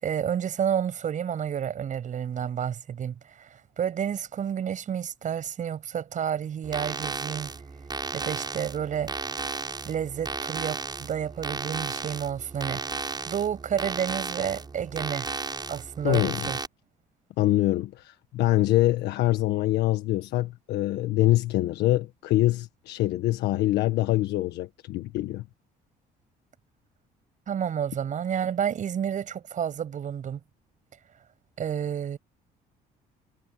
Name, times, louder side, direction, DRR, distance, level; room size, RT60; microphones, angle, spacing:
voice 1, 0.0-7.5 8.1-9.1 9.9-12.8 13.3-15.3 15.7-16.6 27.5-30.4 31.6-32.2, right 8 dB, 50° right, 7.2 m, -30 dB
sound 1, 6.6-16.7, right 4 dB, 25° right, 7.5 m, -34 dB
voice 2, 16.0-16.5 17.4-25.4, left 16 dB, 80° left, 1.5 m, -24 dB
cardioid pair, 110°, 17 cm